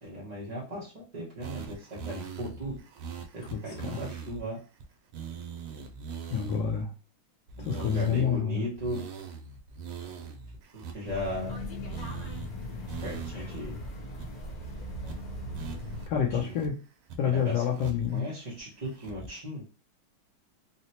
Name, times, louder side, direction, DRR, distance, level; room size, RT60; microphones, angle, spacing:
voice 1, 0.0-2.8 3.3-4.6 7.6-9.0 10.7-11.6 13.0-13.8 16.3-16.6 17.2-17.6 18.1-19.6, equal, 70° right, -7 dB, 0.3 m, -37 dB
sound 1, 1.4-4.4 4.8-4.9 5.1-6.8 7.5-8.4 8.8-11.6 11.9-12.5 12.9-13.6 13.9-14.0 14.2-14.6 15.1-15.2 15.5-16.7 17.1-18.2 18.6-19.4, right 6 dB, 85° right, 1.5 m, -42 dB
voice 2, 3.5-4.0 6.3-6.9 7.6-8.7 13.4-13.5 16.1-16.8 17.2-18.3, left 8 dB, 75° left, 1 dB, 1.1 m, -28 dB
sound 2, 11.0-16.1, left 1 dB, 55° left, 1.1 m, -38 dB
4.0 x 2.1 x 2.7 m, 0.34 s
omnidirectional pair, 2.3 m